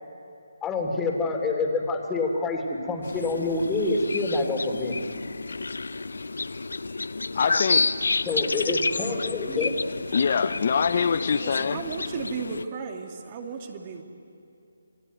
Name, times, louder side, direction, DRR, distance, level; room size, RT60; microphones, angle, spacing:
voice 1, 0.6-5.0 8.2-9.8, left 3 dB, 10° left, 2 dB, 3.0 m, -27 dB
sound 1, 3.0-12.6, left 3 dB, 75° left, 1.0 m, -30 dB
voice 2, 7.3-7.9 10.1-11.8, left 6 dB, 50° left, 12 dB, 0.8 m, -24 dB
voice 3, 11.4-14.0, right 5 dB, 30° right, 4 dB, 2.4 m, -35 dB
28.5 x 20.5 x 9.4 m, 2.7 s
figure-of-eight pair, 160°, 0 cm